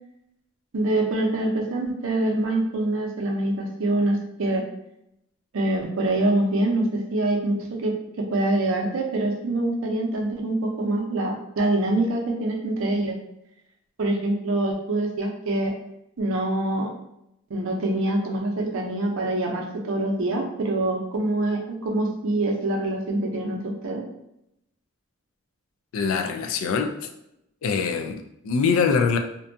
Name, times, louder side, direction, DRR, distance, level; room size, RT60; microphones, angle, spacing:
voice 1, 0.7-4.6 5.5-13.2 14.0-15.7 16.2-16.9 17.5-24.0, right 2 dB, 65° right, 1 dB, 0.5 m, -25 dB
voice 2, 25.9-27.1 27.6-29.2, left 5 dB, 70° left, 6 dB, 0.3 m, -24 dB
2.6 x 2.2 x 2.5 m, 0.82 s
head